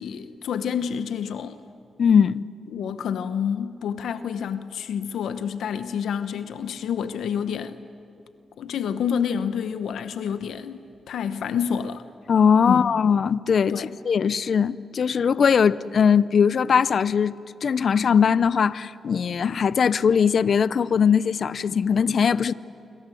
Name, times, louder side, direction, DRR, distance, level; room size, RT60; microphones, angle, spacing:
voice 1, 0.0-1.6 2.7-7.8 8.6-12.0 12.7-12.9 13.7-13.9, left 7 dB, 85° left, 0.9 m, -28 dB
voice 2, 2.0-2.4 12.3-22.5, left 6 dB, 60° left, 0.6 m, -20 dB
28.0 x 24.5 x 7.8 m
cardioid pair, 85°, 0 cm